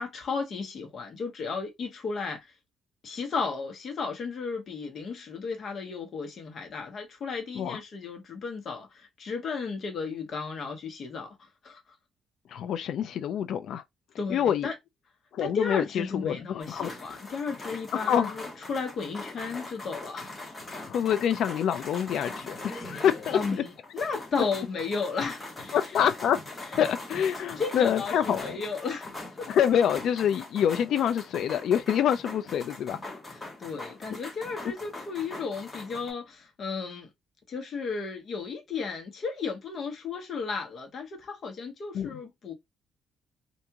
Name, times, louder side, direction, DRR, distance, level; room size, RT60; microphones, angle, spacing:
voice 1, 0.0-2.5 3.0-11.8 14.2-14.7 15.4-20.4 23.3-26.0 26.6-26.7 27.6-29.5 33.3-37.1 37.5-42.5, left 5 dB, 45° left, 1.2 m, -34 dB
voice 2, 12.5-13.8 14.3-14.7 15.3-16.9 17.9-18.3 20.9-23.6 25.7-26.4 26.8-28.6 29.5-33.0 41.9-42.2, left 9 dB, 65° left, 0.4 m, -26 dB
sound 1, 16.6-36.1, left 2 dB, 15° left, 1.3 m, -42 dB
3.5 x 2.6 x 2.9 m
cardioid pair, 145°, 0 cm